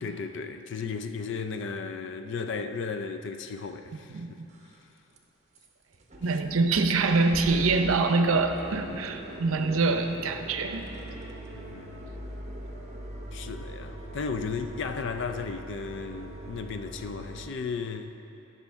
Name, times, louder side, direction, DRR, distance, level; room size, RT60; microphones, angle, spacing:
voice 1, 0.0-4.4 6.3-6.4 11.5-12.2 13.3-18.2, left 5 dB, 60° left, 8 dB, 0.4 m, -35 dB
sound 1, 3.8-3.9 4.4-4.8 5.1-5.2 5.6-5.7 5.9-17.5, right 1 dB, 35° right, 0.8 m, -41 dB
voice 2, 4.1-4.5 6.2-10.8, right 3 dB, 80° right, 6 dB, 0.6 m, -25 dB
14.0 x 5.7 x 3.5 m, 2.9 s
head